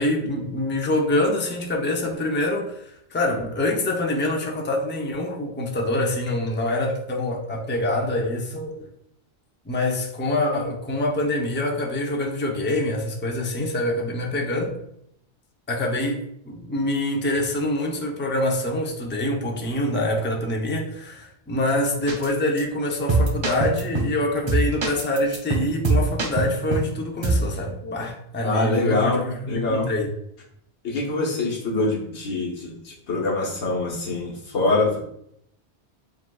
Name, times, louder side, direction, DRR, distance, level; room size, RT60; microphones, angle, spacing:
voice 1, 0.0-8.9 9.7-14.7 15.7-30.1, left 1 dB, 15° left, 0 dB, 0.4 m, -25 dB
sound 1, 22.1-22.3 22.6-22.7 23.1-24.2 24.5-26.9 27.2-27.5, right 2 dB, 50° right, 0.3 m, -23 dB
voice 2, 28.4-29.9 30.8-35.1, left 2 dB, 85° left, -4 dB, 1.3 m, -24 dB
7.4 x 2.5 x 2.3 m, 0.74 s
omnidirectional pair, 1.1 m